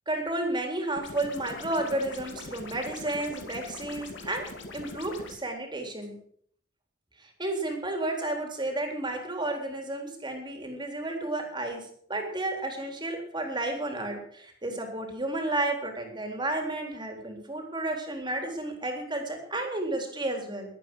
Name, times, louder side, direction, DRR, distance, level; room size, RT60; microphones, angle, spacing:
voice 1, 0.1-6.2 7.4-11.8 12.1-20.7, right 2 dB, 25° right, 3 dB, 3.7 m, -32 dB
sound 1, 1.0-5.4, left 2 dB, 65° left, 2.8 m, -42 dB
21.5 x 9.0 x 6.3 m, 0.62 s
head